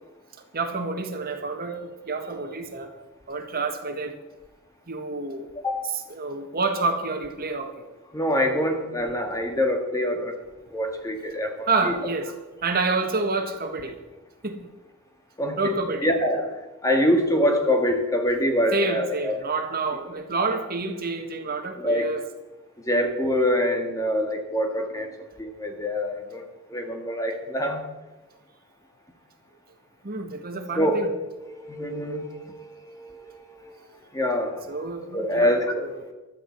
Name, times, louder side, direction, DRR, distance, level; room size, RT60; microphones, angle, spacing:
voice 1, 0.5-2.9 3.3-4.2 4.9-5.5 5.9-7.9 11.7-12.3 12.6-14.0 14.4-14.6 15.6-16.1 18.7-22.2 30.0-31.1 34.7-36.0, right 3 dB, 45° right, 5 dB, 1.6 m, -28 dB
voice 2, 8.1-10.3 10.7-11.9 15.4-19.4 21.8-22.1 22.9-25.1 25.4-26.4 26.7-27.9 30.8-31.1 31.4-33.8 34.1-34.6 35.1-36.1, equal, 15° left, 3 dB, 1.9 m, -25 dB
15.5 x 12.5 x 4.6 m, 1.1 s
head